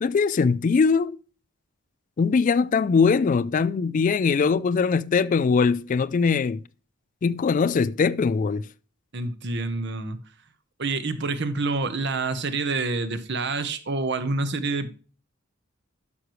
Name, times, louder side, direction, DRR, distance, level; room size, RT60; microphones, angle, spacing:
voice 1, 0.0-1.2 2.2-6.6 7.2-8.7, left 5 dB, 40° left, 0.3 m, -21 dB
voice 2, 9.1-10.2 10.8-14.9, right 3 dB, 55° right, 1.1 m, -27 dB
11.0 x 6.3 x 3.1 m
head